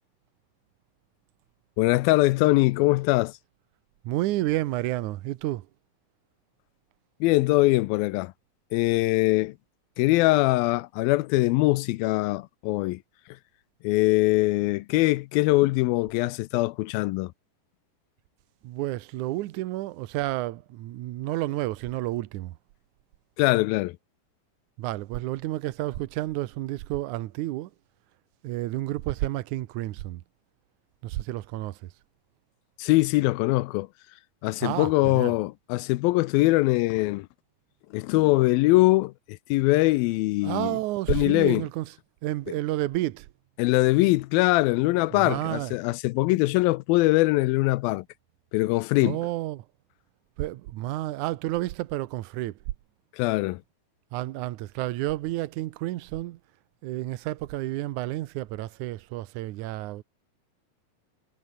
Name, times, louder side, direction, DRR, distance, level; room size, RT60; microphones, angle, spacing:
voice 1, 1.8-3.3 7.2-8.3 8.7-9.6 10.0-13.0 13.8-17.3 23.4-24.0 32.8-33.9 34.4-37.3 37.9-40.8 41.1-41.6 43.6-48.1 48.5-49.2 53.1-53.6, left 20 dB, 85° left, 2.5 m, -22 dB
voice 2, 4.0-5.7 18.6-22.6 24.8-27.7 28.4-30.2 31.0-31.9 34.6-35.3 40.4-41.9 42.2-43.3 45.1-45.7 49.0-49.7 50.4-52.6 54.1-56.4 56.8-60.0, right 16 dB, 70° right, 2.0 m, -30 dB
omnidirectional pair, 4.1 m